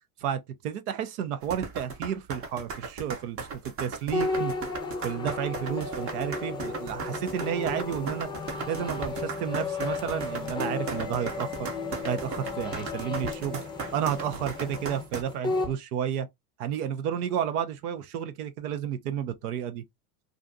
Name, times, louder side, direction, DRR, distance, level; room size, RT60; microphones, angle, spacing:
voice 1, 0.2-4.5 5.0-8.3 8.7-11.7 12.0-13.6 13.9-16.3 16.6-19.8, right 9 dB, 75° right, 0.7 m, -31 dB
sound 1, 1.4-15.2, right 5 dB, 30° right, 0.6 m, -37 dB
sound 2, 4.1-15.7, left 3 dB, 10° left, 0.7 m, -34 dB
2.5 x 2.3 x 2.5 m
supercardioid pair, 110°, 45 cm